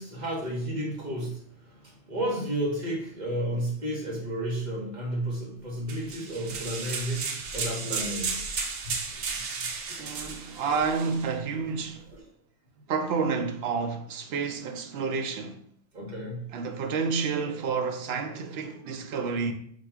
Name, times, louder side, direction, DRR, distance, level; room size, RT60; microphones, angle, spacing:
voice 1, 0.0-1.4 1.8-7.2 7.5-8.4 8.8-9.0 9.6-10.0 15.9-16.5, right 1 dB, 40° right, 1.3 m, -32 dB
sound 1, 5.9-11.3, right 5 dB, 90° right, 1.0 m, -34 dB
voice 2, 10.0-12.1 12.9-15.6 16.5-19.5, right 5 dB, 70° right, 0.8 m, -30 dB
4.2 x 2.4 x 4.4 m
omnidirectional pair, 1.2 m